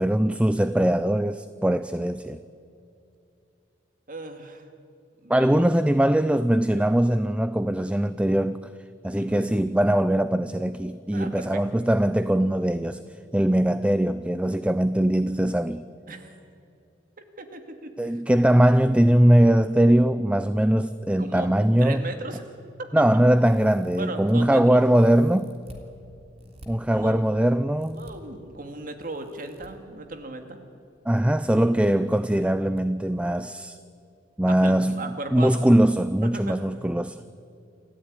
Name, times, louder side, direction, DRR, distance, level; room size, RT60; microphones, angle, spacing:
voice 1, 0.0-2.4 5.3-8.7 9.0-13.0 13.3-15.8 18.0-22.0 22.9-25.6 26.7-28.0 31.1-33.8 34.4-37.2, right 1 dB, 5° right, 0.5 m, -21 dB
voice 2, 4.1-4.7 5.2-5.7 9.2-9.5 11.1-11.6 16.1-16.3 17.4-18.1 21.2-21.5 21.8-22.4 24.0-24.8 26.9-27.3 27.9-30.6 34.5-35.7 36.2-36.7, right 2 dB, 50° right, 2.4 m, -37 dB
sound 1, 23.4-24.3 24.9-25.8 26.4-26.7 27.8-28.1 29.0-29.7 30.8-31.2 31.5-31.6 32.8-32.9 33.2-33.4, right 1 dB, 35° right, 3.3 m, -51 dB
28.5 x 14.0 x 9.7 m
head